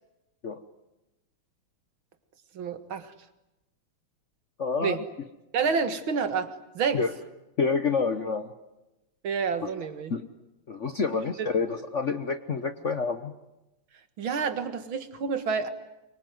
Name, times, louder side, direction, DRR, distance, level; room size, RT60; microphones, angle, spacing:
voice 1, 2.5-3.1 4.8-5.0 5.5-7.0 9.2-10.1 11.4-11.5 14.2-15.7, right 6 dB, 70° right, 10 dB, 2.4 m, -29 dB
voice 2, 4.6-5.0 6.9-7.1 7.6-8.5 9.6-9.7 10.1-10.2 10.7-13.3, left 5 dB, 45° left, 9 dB, 1.0 m, -28 dB
24.5 x 24.0 x 9.3 m, 0.96 s
omnidirectional pair, 2.4 m